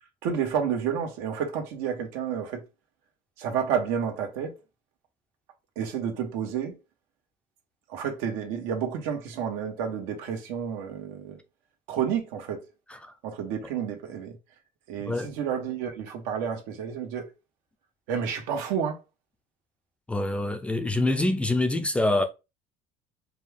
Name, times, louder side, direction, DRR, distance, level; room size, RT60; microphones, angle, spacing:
voice 1, 0.2-2.6 3.4-4.5 5.7-6.8 7.9-11.4 11.9-12.6 13.2-14.4 14.9-17.3 18.1-19.0, right 7 dB, 85° right, 1.4 m, -30 dB
voice 2, 20.1-22.2, left 2 dB, 10° left, 0.5 m, -25 dB
5.1 x 2.4 x 3.4 m
cardioid pair, 140°, 13 cm